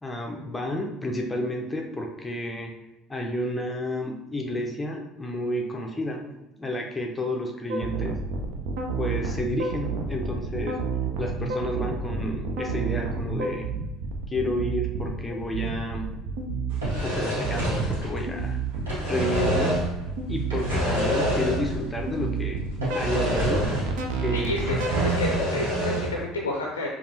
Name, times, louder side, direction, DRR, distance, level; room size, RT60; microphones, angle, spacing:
voice 1, 0.0-2.8 3.1-6.2 6.6-8.2 9.0-10.8 11.2-13.7 14.3-16.1 17.0-18.6 19.1-19.7 20.3-22.7 22.9-23.7 24.2-24.6, left 1 dB, 15° left, 0 dB, 0.5 m, -31 dB
sound 1, 7.7-25.1, right 4 dB, 60° right, 0.5 m, -30 dB
sound 2, 16.7-18.5 18.7-20.0 20.5-21.9 22.1-22.2 22.8-24.1 24.4-26.2, equal, 75° right, 1.2 m, -27 dB
voice 2, 24.3-26.9, left 2 dB, 80° left, -1 dB, 0.4 m, -30 dB
5.2 x 2.4 x 2.7 m, 0.96 s
figure-of-eight pair, 60°, 0 cm